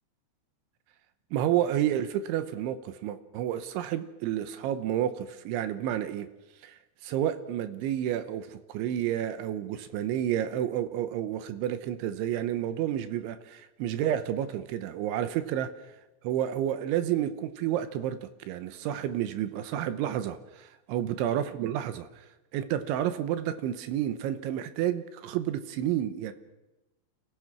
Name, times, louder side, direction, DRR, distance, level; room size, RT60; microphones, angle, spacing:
voice 1, 1.3-6.3 6.6-6.8 7.0-15.7 16.2-22.2 22.5-26.3, right 11 dB, 80° right, 11 dB, 3.2 m, -30 dB
29.5 x 15.0 x 6.1 m, 1.0 s
omnidirectional pair, 5.7 m